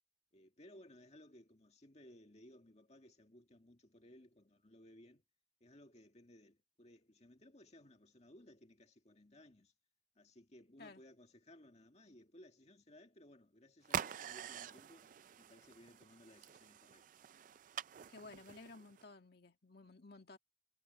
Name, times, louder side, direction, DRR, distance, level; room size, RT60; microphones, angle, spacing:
voice 1, 0.3-5.2 5.6-9.7 10.2-17.3, left 1 dB, 35° left, 2.0 m, -61 dB
sound 1, 13.8-19.0, right 8 dB, 45° right, 0.3 m, -46 dB
voice 2, 18.1-20.4, left 3 dB, 55° left, 2.0 m, -55 dB
head